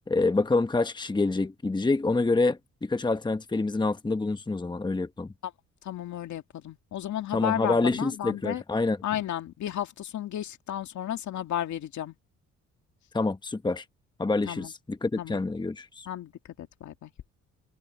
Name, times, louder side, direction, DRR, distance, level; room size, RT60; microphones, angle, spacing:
voice 1, 0.1-5.3 7.3-9.0 13.1-13.8 14.2-16.1, left 3 dB, 15° left, 1.2 m, -27 dB
voice 2, 5.8-8.6 9.0-12.1 14.5-14.7 15.2-15.4 16.1-16.3 16.6-17.1, left 11 dB, 70° left, 2.3 m, -33 dB
cardioid pair, 90°, 30 cm